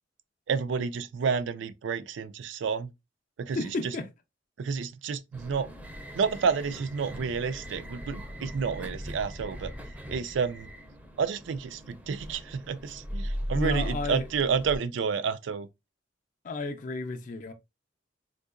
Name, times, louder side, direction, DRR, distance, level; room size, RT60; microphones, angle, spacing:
voice 1, 0.5-2.9 3.4-3.6 3.8-3.9 4.6-5.7 6.1-9.7 10.1-10.7 11.2-15.7, right 5 dB, 85° right, 0.4 m, -30 dB
voice 2, 3.5-4.1 13.5-14.3 16.4-17.5, left 2 dB, 45° left, 0.4 m, -32 dB
sound 1, 5.3-14.8, equal, 10° right, 0.5 m, -39 dB
3.8 x 2.7 x 2.4 m
head